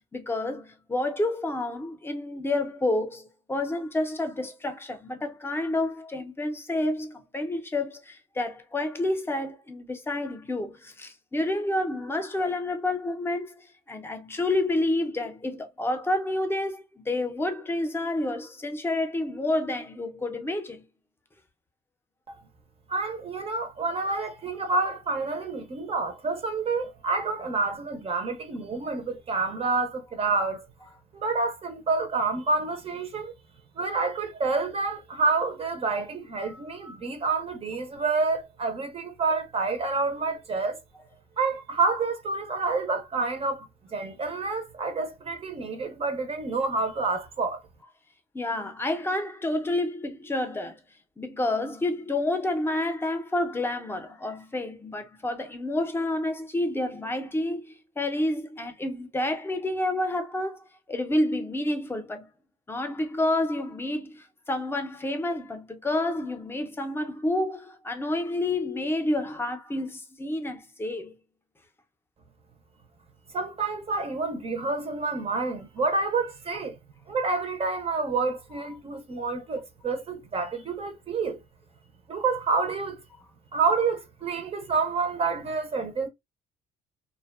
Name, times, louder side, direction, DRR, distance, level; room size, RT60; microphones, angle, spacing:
voice 1, 0.1-20.8 48.3-50.8 51.2-62.3 62.7-71.2, left 1 dB, 15° left, 0.6 m, -29 dB
voice 2, 22.9-30.7 31.1-33.3 33.8-40.8 41.4-47.6 73.3-76.8 77.1-81.4 82.1-83.0 83.5-86.1, right 4 dB, 35° right, 0.6 m, -28 dB
2.5 x 2.2 x 2.3 m
cardioid pair, 110°, 17 cm